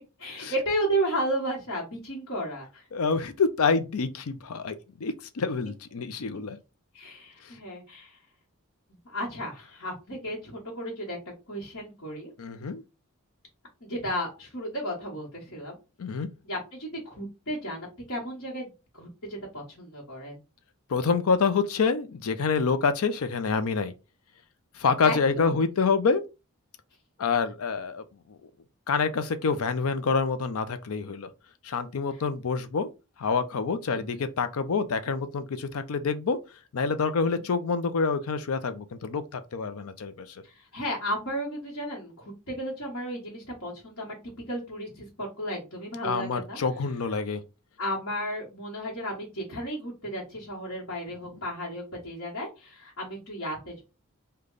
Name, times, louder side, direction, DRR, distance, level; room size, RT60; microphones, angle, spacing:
voice 1, 0.2-2.8 6.9-8.2 9.0-12.3 13.8-15.8 16.4-20.4 25.0-25.6 32.1-32.2 33.9-34.2 37.3-37.4 40.4-44.1 44.5-46.6 47.8-53.8, equal, 60° left, 1.3 m, -34 dB
voice 2, 2.9-6.6 12.4-12.8 16.0-16.3 20.9-23.9 24.8-26.2 27.2-28.0 28.3-28.4 28.9-31.3 31.6-32.9 33.2-36.4 36.7-40.4 46.0-47.4, left 5 dB, 80° left, 0.5 m, -27 dB
3.3 x 2.2 x 3.8 m
head